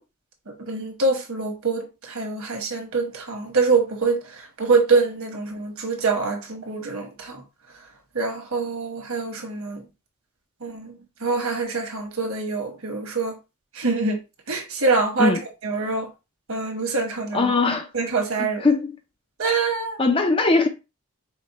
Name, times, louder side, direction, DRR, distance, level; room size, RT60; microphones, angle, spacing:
voice 1, 0.7-7.4 8.1-9.8 10.6-13.3 13.7-14.2 14.5-16.1 16.5-17.5 17.9-18.7 19.4-20.0, right 4 dB, 70° right, 1.2 m, -25 dB
voice 2, 17.3-17.9 18.4-19.0 20.0-20.7, left 3 dB, 25° left, 0.5 m, -20 dB
5.0 x 2.2 x 4.1 m
head